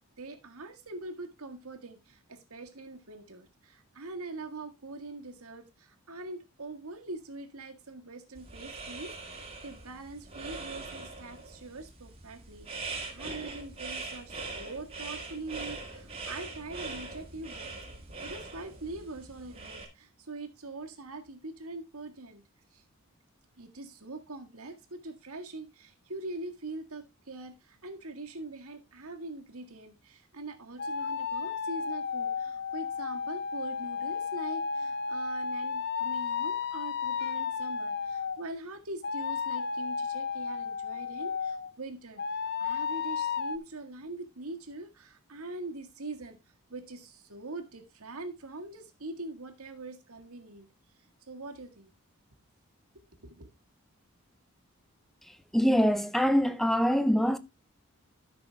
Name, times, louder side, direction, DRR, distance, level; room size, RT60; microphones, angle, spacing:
voice 1, 0.0-17.8 18.2-22.4 22.7-22.8 23.6-42.2 42.6-46.4 46.7-50.7 51.3-51.9 53.2-53.5, right 2 dB, 80° right, 1.8 m, -43 dB
sound 1, 8.4-19.9, right 3 dB, 25° right, 2.1 m, -42 dB
sound 2, 30.8-38.4 39.0-41.7 42.2-43.6, left 6 dB, 50° left, 0.6 m, -33 dB
voice 2, 55.3-57.4, equal, ahead, 0.5 m, -25 dB
12.5 x 6.1 x 3.3 m
head